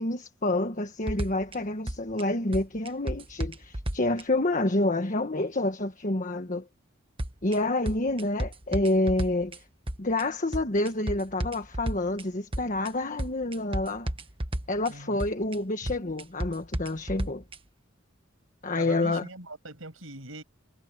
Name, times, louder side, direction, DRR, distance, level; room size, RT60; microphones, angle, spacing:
voice 1, 0.0-6.7 7.4-9.6 10.0-14.1 14.7-17.4 18.6-19.2, left 2 dB, 40° left, 1.4 m, -28 dB
sound 1, 1.1-1.5 1.9-2.2 2.5-4.2 7.2-7.5 7.9-9.6 9.9-10.2 10.5-12.2 12.5-12.9 13.2-14.9 15.2-15.5 15.9-17.6, right 1 dB, 30° right, 1.5 m, -32 dB
voice 2, 14.9-15.3 15.8-16.1 18.7-20.4, right 2 dB, 90° right, 6.5 m, -42 dB
head